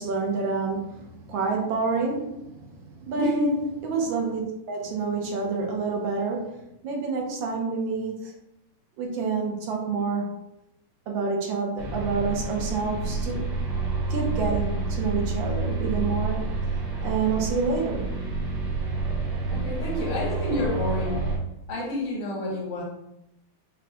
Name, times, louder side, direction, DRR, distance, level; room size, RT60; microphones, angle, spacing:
voice 1, 0.0-3.6 3.8-4.4 4.7-8.3 9.0-10.3 11.1-13.5 14.1-16.4 17.0-18.1, right 4 dB, 70° right, 1 dB, 1.4 m, -28 dB
voice 2, 3.1-3.6 19.5-21.3 21.7-22.8, left 1 dB, 90° left, -3 dB, 2.1 m, -28 dB
sound 1, 11.8-21.4, right 3 dB, 85° right, 2.0 m, -29 dB
6.3 x 2.2 x 2.8 m, 0.86 s
omnidirectional pair, 2.3 m